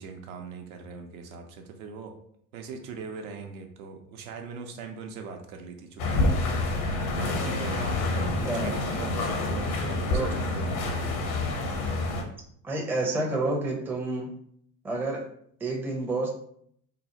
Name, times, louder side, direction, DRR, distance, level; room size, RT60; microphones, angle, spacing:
voice 1, 0.0-2.2 2.5-6.5 7.2-11.2, right 5 dB, 65° right, 3 dB, 0.6 m, -41 dB
sound 1, 6.0-12.2, left 2 dB, 65° left, 0.7 m, -28 dB
voice 2, 8.2-8.8 10.1-10.3 12.6-14.3 14.8-15.3 15.6-16.3, right 2 dB, 5° right, -1 dB, 0.5 m, -29 dB
2.9 x 2.0 x 2.8 m, 0.66 s
figure-of-eight pair, 70°, 45 cm